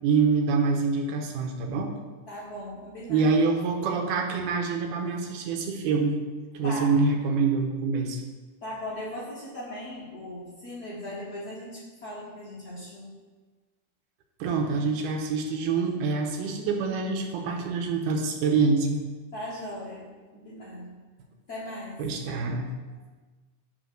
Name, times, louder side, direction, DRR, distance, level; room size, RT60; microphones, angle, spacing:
voice 1, 0.0-1.9 3.1-6.2 6.5-8.2 14.4-19.0 22.0-22.7, right 4 dB, 80° right, 2 dB, 2.3 m, -26 dB
voice 2, 2.3-3.4 6.6-6.9 8.6-13.1 19.3-20.9 21.5-22.0, left 1 dB, 75° left, -7 dB, 0.8 m, -38 dB
8.7 x 3.1 x 6.2 m, 1.3 s
omnidirectional pair, 3.8 m